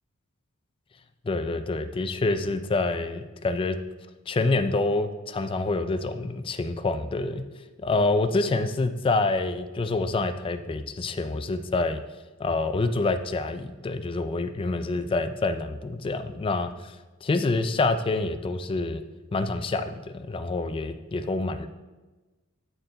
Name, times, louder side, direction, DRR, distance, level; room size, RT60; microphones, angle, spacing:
voice 1, 1.2-3.8 4.3-7.4 7.8-12.0 12.4-16.9 17.2-19.0 19.3-21.7, left 3 dB, 25° left, 10 dB, 0.3 m, -27 dB
9.0 x 4.5 x 3.9 m, 1.2 s
head